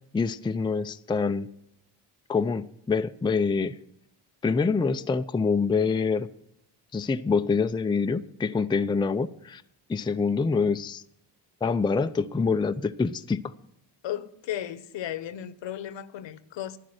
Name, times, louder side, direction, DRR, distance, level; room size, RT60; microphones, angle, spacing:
voice 1, 0.1-1.5 2.3-3.8 4.4-6.3 6.9-9.6 9.9-11.0 11.6-13.5, left 4 dB, 10° left, 0.4 m, -26 dB
voice 2, 14.0-16.8, left 11 dB, 70° left, 1.0 m, -35 dB
11.5 x 10.0 x 6.5 m
cardioid pair, 75°, 46 cm